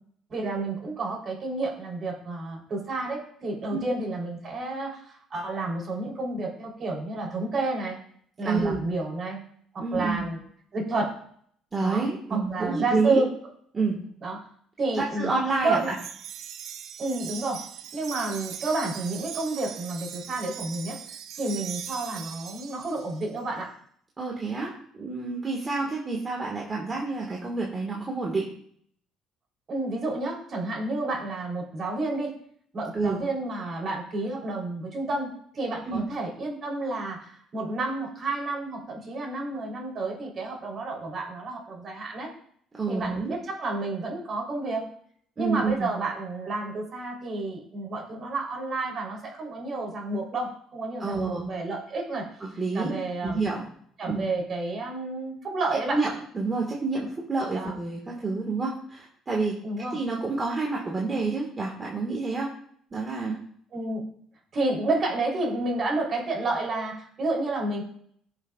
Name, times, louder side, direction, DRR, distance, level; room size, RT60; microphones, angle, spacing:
voice 1, 0.3-8.0 8.4-9.4 9.7-10.4 10.7-11.1 11.8-13.3 14.2-14.4 14.8-15.3 15.6-15.9 17.0-17.6 17.9-21.0 21.4-23.7 29.7-32.3 32.7-42.3 42.9-44.8 45.4-52.3 52.7-53.4 54.0-56.0 57.5-57.7 59.6-60.0 63.7-64.0 64.5-67.8, right 2 dB, 40° right, -1 dB, 3.5 m, -30 dB
voice 2, 8.4-8.8 9.8-10.3 11.7-13.2 13.7-14.0 14.9-15.9 24.2-28.5 32.9-33.2 35.9-36.1 42.8-43.3 45.4-45.9 51.0-51.5 52.4-53.6 54.1-54.2 55.9-59.6 59.9-62.5 62.9-63.4, right 3 dB, 25° right, -2 dB, 1.7 m, -28 dB
Wind chime, 15.8-23.3, right 9 dB, 60° right, 0.6 m, -40 dB
17.0 x 6.7 x 2.4 m, 0.62 s
cardioid pair, 125°, 0 cm